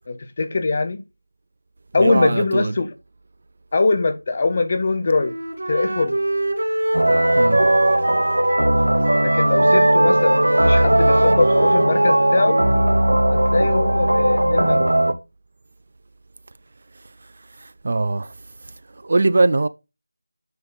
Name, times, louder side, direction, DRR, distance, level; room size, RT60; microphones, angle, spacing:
voice 1, 0.1-1.0 1.9-2.9 3.7-5.3 5.7-6.2 9.2-12.6 13.3-14.9, left 3 dB, 25° left, 0.9 m, -22 dB
voice 2, 2.0-2.7 7.4-7.6 17.6-18.3 18.6-19.7, right 2 dB, 35° right, 0.3 m, -21 dB
Wind instrument woodwind instrument, 5.1-8.8 9.0-13.0, right 1 dB, 65° right, 2.1 m, -23 dB
sound 1, 6.9-15.1, right 1 dB, 85° right, 1.0 m, -18 dB
9.3 x 3.7 x 3.9 m
figure-of-eight pair, 175°, 0 cm